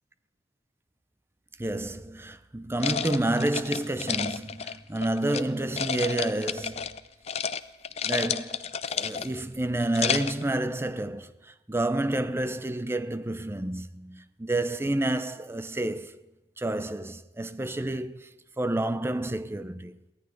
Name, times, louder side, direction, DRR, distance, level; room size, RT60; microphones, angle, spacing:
voice 1, 1.6-7.0 8.0-16.2 16.6-20.0, right 1 dB, 15° right, 0.5 m, -29 dB
sound 1, 2.8-5.4 5.8-7.0 7.3-7.6 7.8-9.4 9.8-10.4, left 7 dB, 35° left, 0.5 m, -31 dB
23.0 x 16.5 x 3.8 m
head